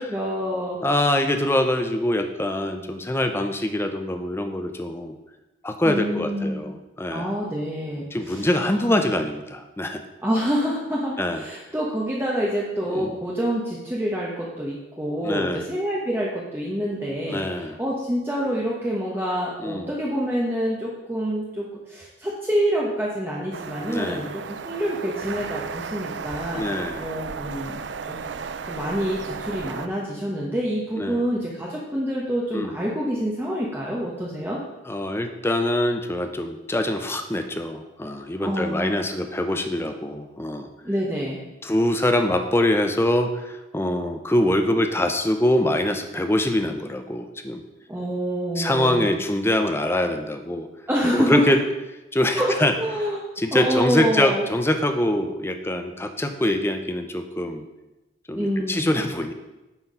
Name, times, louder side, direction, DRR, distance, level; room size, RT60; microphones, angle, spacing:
voice 1, 0.0-0.8 5.8-6.6 7.1-8.9 10.2-26.6 27.0-27.8 28.1-28.2 28.6-34.6 38.4-39.1 40.8-41.4 47.9-49.1 50.9-51.6 52.3-53.2 53.5-54.4 58.3-58.8, equal, 10° right, -4 dB, 1.0 m, -27 dB
voice 2, 0.8-5.2 5.6-7.3 8.1-10.0 11.2-11.5 12.9-13.2 15.2-15.7 17.3-17.8 19.6-19.9 23.9-24.3 26.5-27.1 31.0-31.2 32.5-32.8 34.9-40.7 41.6-47.6 48.6-50.7 51.1-51.6 52.1-52.7 53.4-57.7 58.3-59.3, left 1 dB, 15° left, 6 dB, 0.7 m, -24 dB
sound 1, 23.5-29.9, right 5 dB, 70° right, 0.5 m, -34 dB
9.8 x 4.6 x 5.5 m, 1.0 s
head